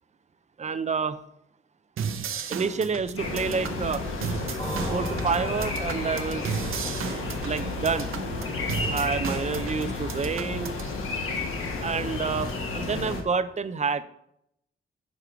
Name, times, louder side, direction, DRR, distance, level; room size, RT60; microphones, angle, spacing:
voice 1, 0.6-1.2 2.5-4.0 4.9-6.6 7.4-8.1 8.9-10.8 11.8-14.0, right 5 dB, 35° right, 12 dB, 0.4 m, -28 dB
sound 1, 2.0-10.9, right 6 dB, 90° right, 0.6 m, -35 dB
sound 2, 3.2-13.2, left 3 dB, 85° left, 1.2 m, -32 dB
sound 3, 4.6-8.3, equal, 15° left, 1.2 m, -37 dB
5.2 x 4.8 x 5.7 m, 0.75 s
wide cardioid pair, 125°, 21 cm